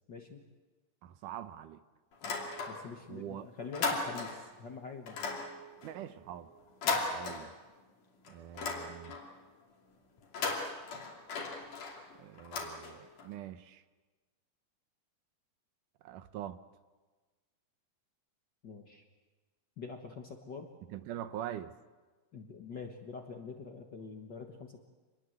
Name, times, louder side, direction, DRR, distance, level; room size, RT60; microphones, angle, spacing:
voice 1, 0.1-0.4 2.2-5.4 6.8-7.1 18.6-19.0 19.8-20.7 22.3-24.8, left 5 dB, 45° left, 3 dB, 1.5 m, -46 dB
voice 2, 1.0-1.8 3.1-3.5 5.8-6.5 7.1-7.5 8.3-9.2 12.2-13.8 16.0-16.6 20.9-21.7, right 11 dB, 75° right, 12 dB, 2.3 m, -43 dB
sound 1, 2.1-3.1 3.4-4.6 5.1-7.9 8.3-9.4 10.2-13.3, left 4 dB, 70° left, 4.3 m, -37 dB
26.0 x 21.0 x 7.9 m, 1.3 s
omnidirectional pair, 3.8 m